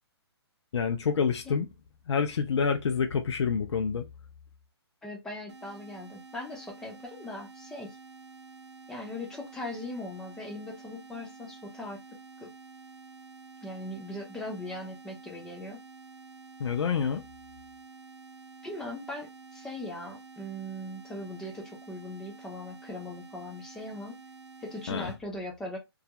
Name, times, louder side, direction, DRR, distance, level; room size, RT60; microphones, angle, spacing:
voice 1, 0.7-1.7 2.1-4.0 16.6-17.2 24.9-25.1, left 6 dB, 80° left, 0.4 m, -27 dB
voice 2, 5.0-8.0 8.9-12.0 12.4-12.5 13.6-15.8 18.6-24.2 24.6-25.8, left 1 dB, 5° left, 0.3 m, -39 dB
sound 1, 5.5-25.2, right 4 dB, 85° right, 0.6 m, -50 dB
2.3 x 2.1 x 2.7 m
hypercardioid pair, 150°, 14 cm